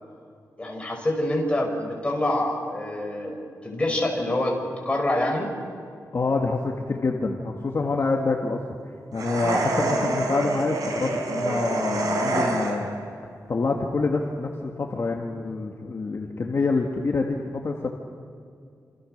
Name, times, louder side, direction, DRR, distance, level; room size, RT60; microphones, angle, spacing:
voice 1, 0.6-4.6 4.8-5.5 9.8-10.1, left 1 dB, 20° left, 0 dB, 5.6 m, -26 dB
voice 2, 6.1-8.6 9.1-12.8 13.5-17.9, left 3 dB, 45° left, 1 dB, 1.9 m, -26 dB
sound 1, 9.2-13.0, right 2 dB, 85° right, 3.9 m, -27 dB
28.0 x 27.5 x 6.7 m, 2.3 s
wide cardioid pair, 150°, 6 cm